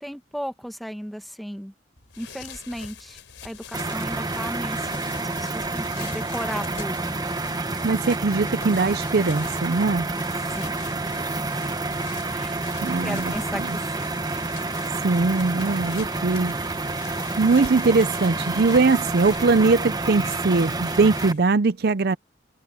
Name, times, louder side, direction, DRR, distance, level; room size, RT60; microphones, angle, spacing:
voice 1, 0.0-1.7 2.2-7.4 10.4-10.8 11.0-11.3 12.3-12.6 13.0-14.2, equal, ahead, 1.6 m, -35 dB
sound 1, 2.0-21.6, left 7 dB, 85° left, 4.2 m, -44 dB
sound 2, 3.7-21.3, right 3 dB, 20° right, 0.9 m, -29 dB
voice 2, 7.8-10.1 12.8-13.8 15.0-16.5 17.4-22.2, right 4 dB, 55° right, 0.5 m, -21 dB
head